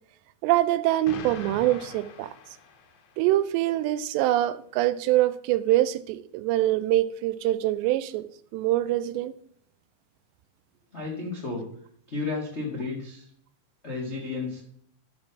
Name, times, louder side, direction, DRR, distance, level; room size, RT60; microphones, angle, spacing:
voice 1, 0.4-2.3 3.2-8.3 8.5-9.3, right 14 dB, 90° right, 2.8 m, -24 dB
Explosion, 1.1-3.2, left 5 dB, 80° left, 3.3 m, -42 dB
voice 2, 10.9-11.7 12.1-13.3 13.8-14.6, left 3 dB, 65° left, 0.6 m, -32 dB
12.5 x 4.4 x 5.8 m
omnidirectional pair, 4.9 m